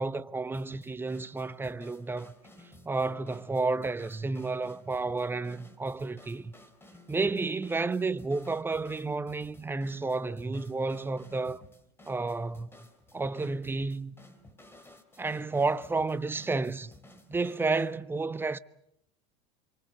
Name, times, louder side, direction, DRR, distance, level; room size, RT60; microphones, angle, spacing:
voice 1, 0.0-2.3 2.8-6.5 7.1-11.6 12.1-12.7 13.1-14.1 15.2-16.9 17.3-18.6, right 3 dB, 10° right, 0.9 m, -31 dB
sound 1, 0.5-18.0, left 1 dB, 10° left, 3.4 m, -55 dB
27.5 x 24.0 x 6.7 m
hypercardioid pair, 95°, 19 cm